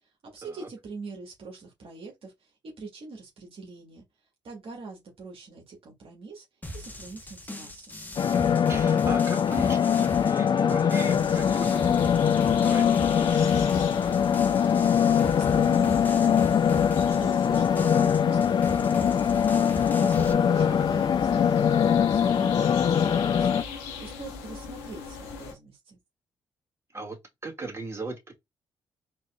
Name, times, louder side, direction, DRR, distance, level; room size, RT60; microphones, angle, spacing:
voice 1, 0.2-4.0 4.4-6.4 6.7-8.0 14.3-19.4 20.0-26.0, right 4 dB, 60° right, 1.4 m, -43 dB
sound 1, 6.6-20.3, left 1 dB, 15° left, 1.0 m, -39 dB
sound 2, 8.2-23.6, left 8 dB, 45° left, 0.3 m, -22 dB
voice 2, 8.2-11.9 12.3-13.3 20.5-20.8 26.9-27.2 27.4-28.4, right 3 dB, 25° right, 1.9 m, -38 dB
sound 3, 11.1-25.5, left 5 dB, 90° left, 0.8 m, -39 dB
4.0 x 3.0 x 2.3 m
hypercardioid pair, 45°, 11 cm